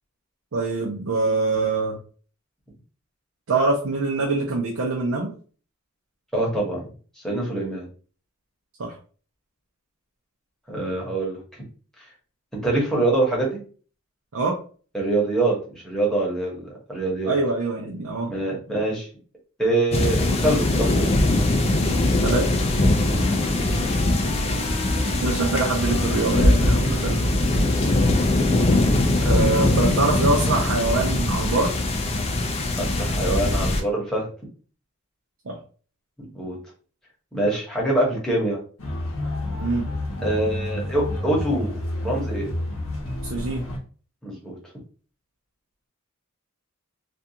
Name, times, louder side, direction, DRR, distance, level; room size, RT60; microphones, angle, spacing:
voice 1, 0.5-2.0 3.5-5.3 8.8-8.9 14.3-14.6 17.2-18.3 22.2-22.5 25.0-27.2 29.2-31.7 35.5-35.6 39.6-39.9 43.2-43.6, right 3 dB, 65° right, -2 dB, 0.5 m, -24 dB
voice 2, 6.3-6.8 7.2-7.9 10.7-11.6 12.0-12.1 12.6-13.6 14.9-17.3 18.3-19.1 19.6-21.1 23.1-23.5 24.5-24.8 26.6-27.0 27.6-27.9 32.8-34.3 36.2-36.6 37.3-38.6 40.2-41.7 42.0-42.5 44.2-44.5, right 2 dB, 5° left, -4 dB, 0.9 m, -25 dB
sound 1, 19.9-33.8, left 1 dB, 30° left, 0.4 m, -21 dB
Wind instrument woodwind instrument, 21.9-28.1, left 1 dB, 85° right, 1.1 m, -40 dB
sound 2, 38.8-43.8, left 1 dB, 70° left, 0.7 m, -29 dB
2.5 x 2.3 x 2.7 m, 0.40 s
head